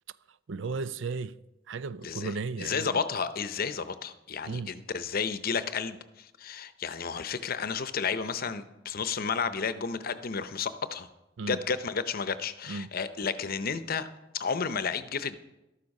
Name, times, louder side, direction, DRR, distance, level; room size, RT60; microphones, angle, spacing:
voice 1, 0.5-1.3 1.7-3.0 4.4-4.7 11.4-11.6 12.7-12.9, right 4 dB, 85° right, 0.5 m, -35 dB
voice 2, 2.6-11.1 11.4-14.1 14.3-15.4, left 5 dB, 50° left, 0.7 m, -32 dB
13.5 x 12.5 x 5.4 m
head